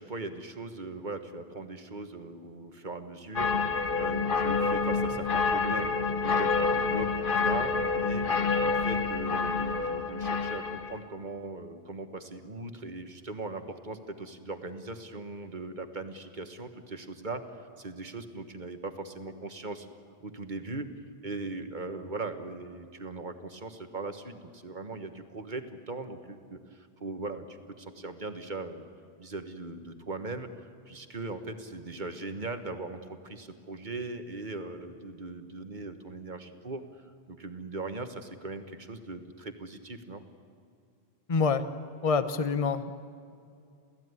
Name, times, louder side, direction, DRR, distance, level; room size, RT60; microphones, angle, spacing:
voice 1, 0.0-3.7 3.9-8.2 8.6-17.4 17.8-19.9 20.2-20.9 21.2-28.9 29.2-40.2, right 3 dB, 45° right, 8 dB, 1.6 m, -39 dB
sound 1, 3.4-11.0, left 4 dB, 55° left, 1.3 m, -28 dB
voice 2, 41.3-41.6 42.0-42.9, left 5 dB, 35° left, 11 dB, 1.0 m, -26 dB
28.5 x 16.5 x 9.7 m, 2.4 s
omnidirectional pair, 1.1 m